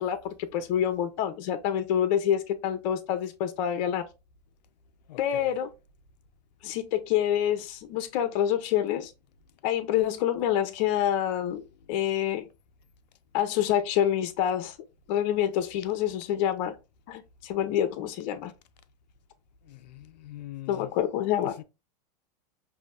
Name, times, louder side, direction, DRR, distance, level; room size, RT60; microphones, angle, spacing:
voice 1, 0.0-4.1 5.2-5.7 6.6-9.1 9.6-12.5 13.3-14.7 15.1-16.8 17.1-18.5 20.7-21.6, left 10 dB, 55° left, 0.9 m, -27 dB
voice 2, 5.1-5.5 19.6-20.9 21.4-21.6, left 14 dB, 85° left, 0.6 m, -43 dB
5.2 x 2.8 x 2.3 m
hypercardioid pair, 120°, 21 cm